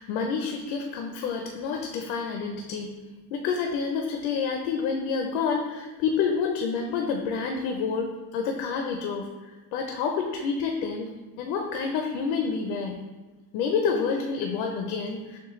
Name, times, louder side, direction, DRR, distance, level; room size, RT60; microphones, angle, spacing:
voice 1, 0.0-3.0 3.3-11.1 11.4-13.0 13.5-15.4, left 5 dB, 85° left, 3 dB, 0.6 m, -28 dB
6.5 x 2.2 x 3.1 m, 1.2 s
cardioid pair, 165°, 40 cm